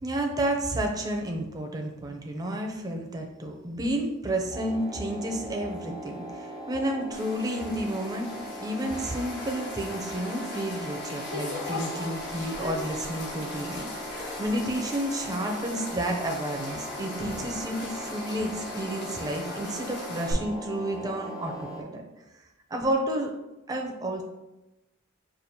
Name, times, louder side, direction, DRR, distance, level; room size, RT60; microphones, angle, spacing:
voice 1, 0.0-8.3 8.6-22.0 22.7-23.3 23.7-24.2, right 1 dB, 20° right, 2 dB, 0.6 m, -31 dB
sound 1, 4.5-21.8, equal, 15° left, 0.9 m, -39 dB
sound 2, 7.1-20.3, left 2 dB, 55° left, 1.0 m, -39 dB
6.5 x 2.5 x 2.8 m, 0.99 s
head